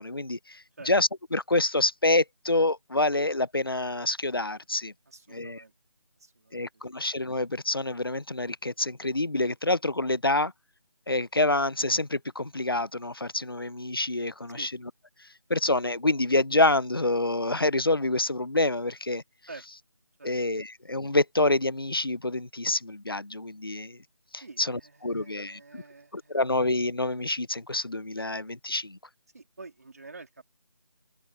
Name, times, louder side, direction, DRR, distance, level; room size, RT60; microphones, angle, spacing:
voice 1, 0.0-4.9 5.3-5.6 6.5-10.5 11.1-14.7 15.5-19.2 20.2-24.0 24.3-25.8 26.1-29.0, left 2 dB, 40° left, 0.5 m, -27 dB
voice 2, 5.1-5.7 6.2-6.8 14.5-14.7 19.5-19.6 20.2-20.3 24.4-26.4 29.3-30.4, right 3 dB, 30° right, 3.3 m, -48 dB
open air
figure-of-eight pair, 180°, 18 cm